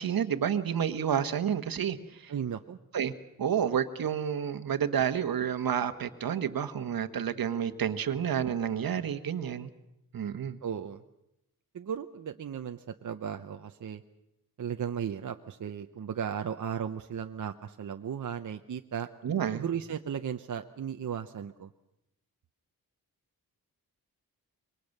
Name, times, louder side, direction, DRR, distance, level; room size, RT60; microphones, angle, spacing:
voice 1, 0.0-2.3 2.9-3.1 3.4-9.7 10.1-10.6 19.2-19.6, right 8 dB, 75° right, 10 dB, 1.4 m, -30 dB
voice 2, 2.3-2.8 10.6-11.0 11.7-14.0 14.6-19.1 19.5-21.7, right 8 dB, 55° right, 6 dB, 0.8 m, -36 dB
26.5 x 23.0 x 6.6 m, 0.86 s
wide cardioid pair, 160°, 36 cm